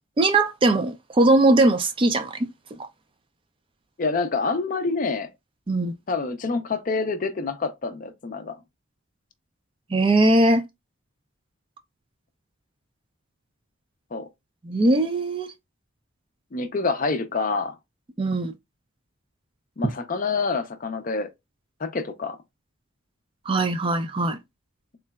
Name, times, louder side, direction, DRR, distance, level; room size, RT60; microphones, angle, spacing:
voice 1, 0.2-2.4 2.7-2.9 5.7-5.9 9.9-10.6 14.6-15.5 18.2-18.5 19.8-19.9 23.5-24.4, right 2 dB, 25° right, 0.4 m, -20 dB
voice 2, 4.0-5.3 6.1-8.6 14.1-14.3 16.5-17.8 19.8-21.3 21.8-22.4, left 4 dB, 40° left, 0.5 m, -27 dB
3.8 x 3.2 x 2.2 m
head